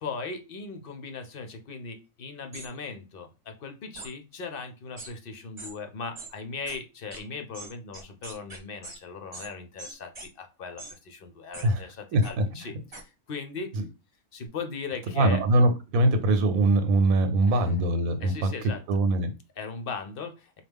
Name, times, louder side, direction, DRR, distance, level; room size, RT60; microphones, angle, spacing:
voice 1, 0.0-10.1 10.4-12.7 13.3-13.7 14.3-15.4 17.5-17.7 18.2-18.8 19.6-20.3, left 4 dB, 55° left, 6 dB, 0.7 m, -38 dB
sound 1, 2.5-2.7 3.9-4.1 5.0-5.1 5.6-5.7 6.1-6.3 6.7-6.8 7.1-7.2 7.5-9.0 9.3-9.5 9.8-10.3 10.8-10.9 11.5-11.7 12.2-12.3 12.9-13.0, right 2 dB, 25° right, 0.9 m, -41 dB
voice 2, 12.1-12.4 13.7-13.8 15.2-18.5 18.9-19.3, right 2 dB, 90° right, 8 dB, 1.1 m, -22 dB
4.4 x 2.3 x 3.5 m, 0.29 s
omnidirectional pair, 1.4 m